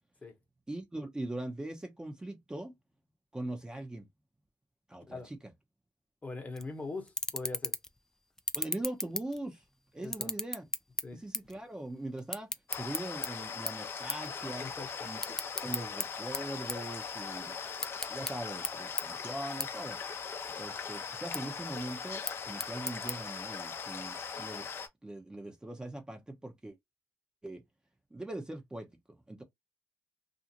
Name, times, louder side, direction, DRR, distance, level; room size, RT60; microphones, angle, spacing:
voice 1, 0.7-2.8 3.3-4.1 4.9-5.4 8.5-9.6 9.9-10.6 11.1-14.7 15.0-17.6 18.1-20.0 20.5-24.7 25.0-26.8 27.4-27.6 28.1-28.9 29.3-29.4, right 1 dB, 15° right, 0.8 m, -41 dB
voice 2, 6.2-7.8 10.0-10.3 11.0-11.2 14.6-15.1, left 3 dB, 25° left, 1.1 m, -41 dB
sound 1, 6.6-6.7 7.1-8.0 8.4-9.7 10.0-11.6 11.9-13.3 13.7-13.8 14.1-14.3 14.6-16.1 16.3-17.3 17.7-18.3 18.6-18.7 19.0-19.1 19.6-19.7 20.1-20.6 21.1-21.4 22.1-23.1, left 1 dB, 10° left, 0.4 m, -35 dB
sound 2, 12.7-24.9, left 6 dB, 45° left, 0.7 m, -40 dB
2.6 x 2.4 x 2.9 m
supercardioid pair, 70°, 6 cm